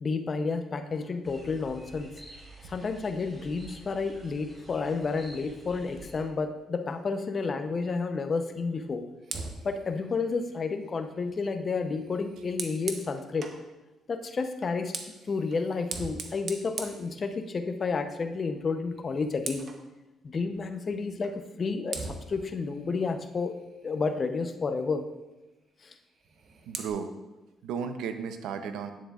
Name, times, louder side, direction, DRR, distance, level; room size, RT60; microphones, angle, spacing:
voice 1, 0.0-2.1 2.7-9.0 9.6-13.5 14.1-14.9 15.3-19.7 20.2-23.5 23.8-25.0 25.8-25.9, left 4 dB, 40° left, 6 dB, 0.6 m, -31 dB
sound 1, 1.2-6.2, right 2 dB, 20° right, 2.0 m, -50 dB
Fire, 9.2-13.7 14.6-17.8 18.2-18.4 18.8-19.9 21.2-21.4 21.9-24.2 26.1-26.9, right 4 dB, 55° right, 0.8 m, -42 dB
voice 2, 26.7-27.1 27.6-28.9, right 6 dB, 85° right, 8 dB, 0.6 m, -34 dB
9.4 x 7.3 x 2.4 m, 1.0 s
cardioid pair, 90°, 0 cm